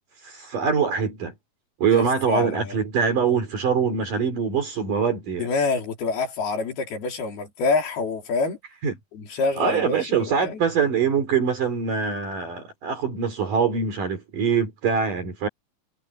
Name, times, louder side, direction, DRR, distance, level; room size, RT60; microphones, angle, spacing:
voice 1, 0.2-1.3 1.8-5.5 8.8-9.0 9.6-15.5, right 6 dB, 60° right, 5.0 m, -23 dB
voice 2, 1.9-2.8 5.4-8.6 9.1-10.6, left 4 dB, 80° left, 5.8 m, -26 dB
omnidirectional pair, 4.4 m